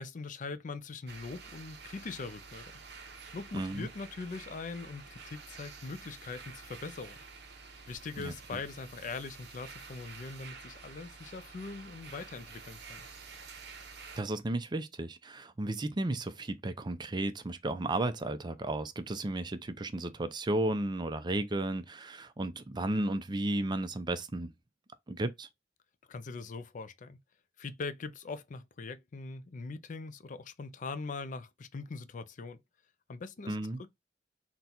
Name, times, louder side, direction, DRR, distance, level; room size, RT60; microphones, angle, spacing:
voice 1, 0.0-2.7 3.3-7.2 7.9-13.1 26.1-27.2 27.6-32.6 33.1-33.9, left 4 dB, 45° left, 0.4 m, -42 dB
sound 1, 1.1-14.2, right 5 dB, 65° right, 0.9 m, -49 dB
voice 2, 3.5-3.9 8.2-8.6 14.2-24.5 25.1-25.5 33.5-33.8, right 2 dB, 25° right, 0.5 m, -34 dB
3.9 x 2.2 x 4.2 m
head